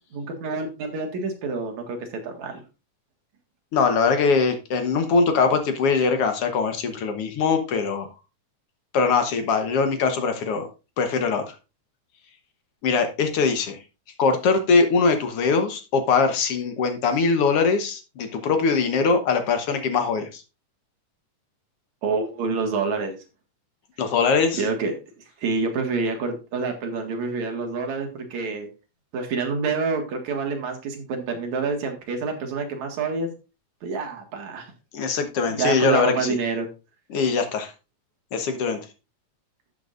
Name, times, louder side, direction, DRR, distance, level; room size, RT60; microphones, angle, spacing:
voice 1, 0.1-2.6 22.0-23.2 24.6-24.9 25.4-28.7 29.1-33.3 33.8-34.7 35.5-36.7, right 4 dB, 65° right, 3 dB, 2.9 m, -27 dB
voice 2, 3.7-8.1 8.9-10.7 11.0-11.5 12.8-13.8 14.2-20.4 24.0-24.6 34.9-36.3 37.1-37.7 38.3-38.8, left 4 dB, 60° left, 7 dB, 1.6 m, -22 dB
12.5 x 7.9 x 2.5 m, 0.29 s
omnidirectional pair, 3.8 m